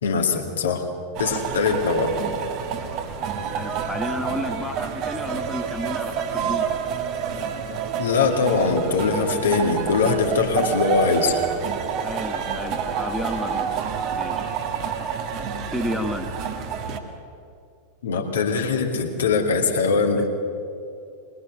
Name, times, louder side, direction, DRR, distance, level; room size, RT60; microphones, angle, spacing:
voice 1, 0.0-0.9 1.2-2.2 8.0-11.4 18.0-20.3, left 4 dB, 65° left, 2 dB, 2.4 m, -22 dB
sound 1, 1.1-17.0, right 6 dB, 40° right, 1.8 m, -28 dB
voice 2, 3.5-6.7 12.0-13.7 14.1-14.5 15.7-16.3 20.2-20.3, equal, ahead, 3 dB, 1.4 m, -31 dB
22.0 x 20.5 x 6.8 m, 2.5 s
figure-of-eight pair, 90°, 0 cm